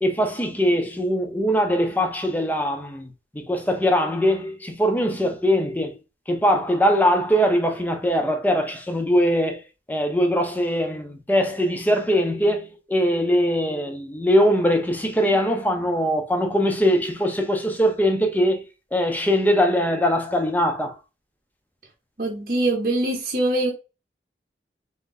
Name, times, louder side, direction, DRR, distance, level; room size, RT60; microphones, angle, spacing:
voice 1, 0.0-3.1 3.3-5.9 6.3-9.6 9.9-18.6 18.9-20.9, equal, 10° left, 0.6 m, -21 dB
voice 2, 22.2-23.7, right 2 dB, 50° right, 0.8 m, -23 dB
3.7 x 2.7 x 3.8 m
head